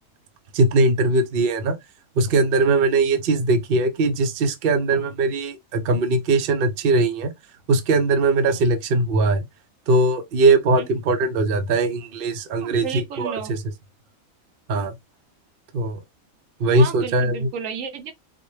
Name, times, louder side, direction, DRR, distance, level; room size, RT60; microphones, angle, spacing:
voice 1, 0.5-1.8 2.2-7.3 7.7-9.4 9.9-13.6 14.7-14.9 15.7-16.0 16.6-17.5, right 2 dB, 55° right, 0.7 m, -20 dB
voice 2, 12.6-13.5 16.7-18.1, right 7 dB, 70° right, 1.0 m, -32 dB
3.9 x 2.2 x 3.1 m
omnidirectional pair, 1.4 m